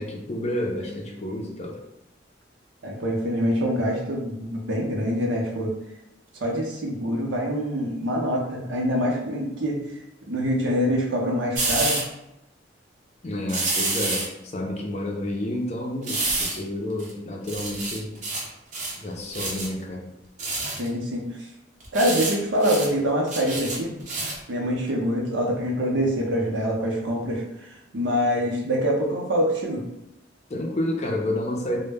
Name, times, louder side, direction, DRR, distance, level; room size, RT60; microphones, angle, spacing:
voice 1, 0.0-1.8 13.2-18.2 19.0-20.1 30.5-31.8, left 1 dB, 35° left, 0 dB, 0.4 m, -30 dB
voice 2, 2.8-5.7 6.3-9.8 10.3-12.0 20.6-21.3 21.9-24.0 24.5-27.4 27.9-29.8, equal, 85° right, -1 dB, 0.6 m, -25 dB
sound 1, 11.5-12.0 13.5-14.3 16.0-16.6 17.0-17.1 17.5-18.5 18.7-19.0 19.3-19.7 20.4-20.9 21.8-22.3 22.6-22.9 23.3-24.4 24.9-25.0, right 2 dB, 45° right, 0.5 m, -27 dB
2.1 x 2.0 x 3.3 m, 0.88 s
head